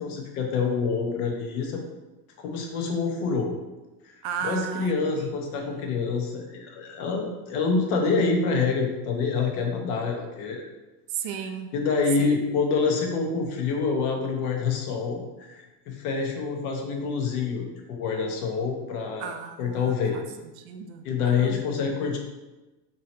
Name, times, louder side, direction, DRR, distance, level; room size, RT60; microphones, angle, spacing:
voice 1, 0.0-1.8 2.4-3.5 4.1-4.2 4.4-10.6 11.7-19.3 19.6-20.2 21.0-22.2, left 4 dB, 65° left, 1 dB, 1.1 m, -27 dB
voice 2, 4.2-5.3 5.7-6.0 11.1-11.7 12.2-12.4 19.2-20.2 20.6-21.6, right 7 dB, 60° right, 6 dB, 0.6 m, -35 dB
3.7 x 2.9 x 4.3 m, 1.1 s
supercardioid pair, 165°, 47 cm